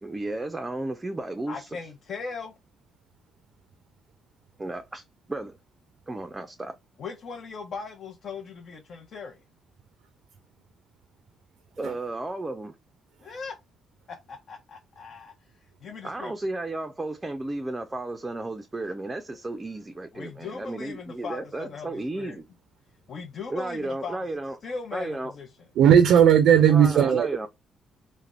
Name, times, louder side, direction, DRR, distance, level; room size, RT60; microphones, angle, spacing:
voice 1, 0.0-1.8 4.6-5.0 5.3-5.6 6.1-6.8 11.8-12.7 16.0-22.4 23.5-24.6 24.9-25.3 26.7-27.5, right 2 dB, 20° right, 0.4 m, -33 dB
voice 2, 1.5-2.5 7.0-9.4 13.2-13.5 14.1-15.3 15.8-16.3 20.1-22.4 23.1-24.2 24.6-25.5, left 5 dB, 60° left, 0.7 m, -38 dB
voice 3, 25.8-27.5, right 8 dB, 80° right, 0.4 m, -17 dB
3.3 x 2.1 x 2.4 m
cardioid pair, 90°, 0 cm